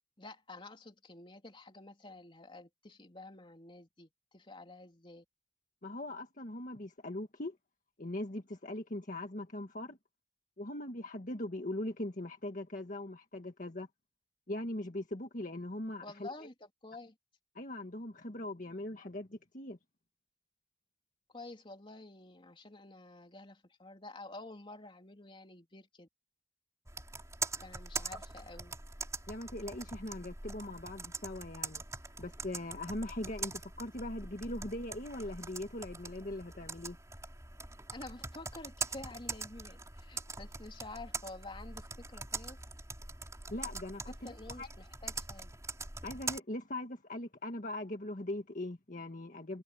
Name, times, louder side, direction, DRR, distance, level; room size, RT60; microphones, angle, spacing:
voice 1, 0.2-5.2 16.0-17.2 21.3-26.1 27.6-28.7 37.9-42.6 44.1-45.5, left 2 dB, 30° left, 3.5 m, -50 dB
voice 2, 5.8-7.6 8.0-10.0 10.6-13.9 14.5-16.3 17.5-19.8 29.3-31.8 32.2-37.0 43.5-44.7 46.0-49.6, left 1 dB, 50° left, 1.7 m, -40 dB
Computer keyboard, 26.9-46.4, right 3 dB, 20° right, 3.6 m, -43 dB
head